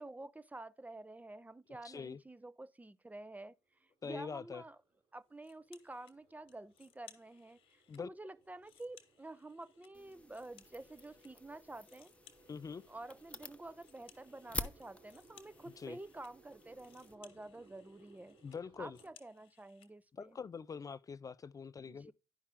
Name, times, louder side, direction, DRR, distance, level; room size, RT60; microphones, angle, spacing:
voice 1, 0.0-3.5 3.8-4.8 5.1-12.1 12.9-18.4 18.8-20.4 21.9-22.1, right 2 dB, 15° right, 0.7 m, -50 dB
voice 2, 1.7-2.2 4.0-4.6 7.9-8.1 12.5-12.8 15.8-16.0 18.4-19.0 20.1-22.1, left 6 dB, 40° left, 0.4 m, -44 dB
sound 1, 3.6-19.1, right 4 dB, 70° right, 3.4 m, -67 dB
sound 2, 5.4-6.1 6.5-8.0 8.4-11.3 11.6-19.9, left 10 dB, 80° left, 1.1 m, -65 dB
sound 3, 9.9-17.2, left 2 dB, 15° left, 0.9 m, -49 dB
10.0 x 5.5 x 3.6 m
supercardioid pair, 50°, 9 cm